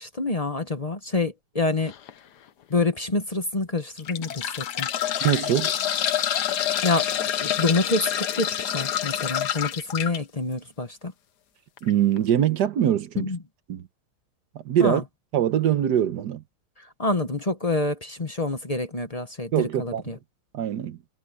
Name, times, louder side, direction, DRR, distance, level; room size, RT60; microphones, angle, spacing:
voice 1, 0.0-1.9 2.7-4.9 6.8-7.1 7.4-11.1 13.2-13.4 14.8-15.0 17.0-20.2, left 2 dB, 25° left, 1.1 m, -27 dB
sound 1, 1.9-2.1 2.7-2.8 3.8-10.2 11.8-11.9 12.2-12.3, left 10 dB, 90° left, 1.6 m, -27 dB
voice 2, 5.2-5.7 11.8-13.3 13.7-13.8 14.6-15.0 15.3-16.4 19.5-20.0 20.5-21.0, right 10 dB, 90° right, 1.6 m, -23 dB
omnidirectional pair, 1.7 m